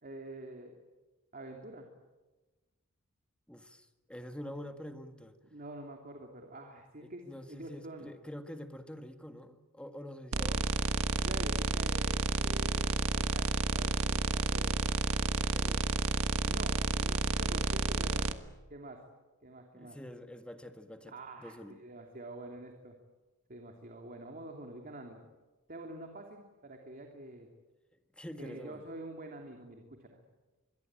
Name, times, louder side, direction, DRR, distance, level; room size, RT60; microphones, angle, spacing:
voice 1, 0.0-0.7 1.3-1.9 4.4-4.5 5.5-8.1 10.3-10.6 11.2-14.7 16.4-18.2 18.7-19.0 19.4-20.0 21.1-22.9 23.5-25.2 25.7-27.5 28.4-30.2, right 1 dB, 40° right, 2 dB, 2.9 m, -47 dB
voice 2, 3.5-5.3 7.0-10.6 15.5-15.9 19.7-21.1 21.4-21.8 28.1-28.8, equal, 5° left, 7 dB, 1.8 m, -46 dB
sound 1, 10.3-18.3, right 3 dB, 80° right, 1.4 m, -31 dB
25.5 x 22.5 x 9.0 m, 1.2 s
head